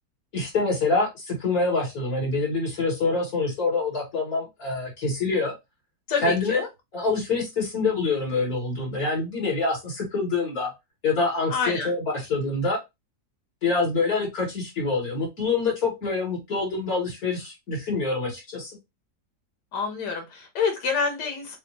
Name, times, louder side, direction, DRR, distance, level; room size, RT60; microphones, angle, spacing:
voice 1, 0.3-5.5 6.2-6.6 6.9-10.7 11.0-12.8 13.6-18.7, left 3 dB, 65° left, -2 dB, 2.7 m, -26 dB
voice 2, 6.1-6.7 11.5-11.9 19.7-21.6, left 5 dB, 90° left, 4 dB, 1.9 m, -27 dB
6.6 x 2.3 x 3.0 m, 0.21 s
omnidirectional pair, 1.7 m